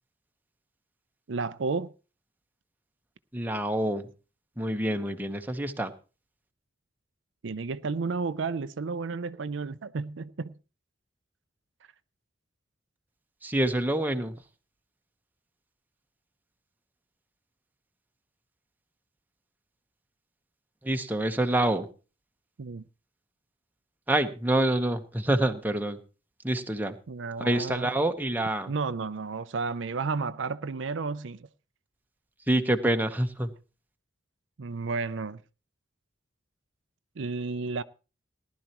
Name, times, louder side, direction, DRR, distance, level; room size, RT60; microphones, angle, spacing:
voice 1, 1.3-1.9 7.4-10.5 22.6-22.8 27.1-27.9 28.7-31.5 34.6-35.4 37.2-37.8, right 4 dB, 70° right, 0.5 m, -32 dB
voice 2, 3.3-4.1 4.6-5.9 13.4-14.4 20.8-21.9 24.1-26.0 26.4-27.0 27.4-28.7 32.5-33.5, right 1 dB, 10° right, 1.0 m, -27 dB
18.5 x 11.5 x 3.0 m
head